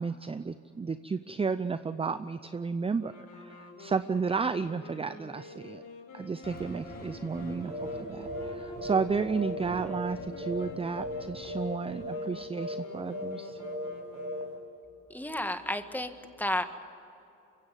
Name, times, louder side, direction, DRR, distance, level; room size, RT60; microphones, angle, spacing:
voice 1, 0.0-5.8 6.1-13.6, right 5 dB, 20° right, 13 dB, 0.6 m, -32 dB
sound 1, 3.0-14.8, left 1 dB, 65° left, 4.6 m, -48 dB
sound 2, 6.4-12.4, right 1 dB, 35° left, 7.2 m, -47 dB
sound 3, 7.7-8.0 8.2-8.5 8.8-10.1 10.4-10.7 10.9-11.2 11.4-11.7 12.0-12.3 12.5-12.8 13.1-13.3 13.6-13.9 14.1-14.4, left 1 dB, 75° right, 6.6 m, -36 dB
voice 2, 15.1-16.6, left 1 dB, 5° left, 8 dB, 1.6 m, -32 dB
23.5 x 16.0 x 9.2 m, 2.8 s
cardioid pair, 90°, 30 cm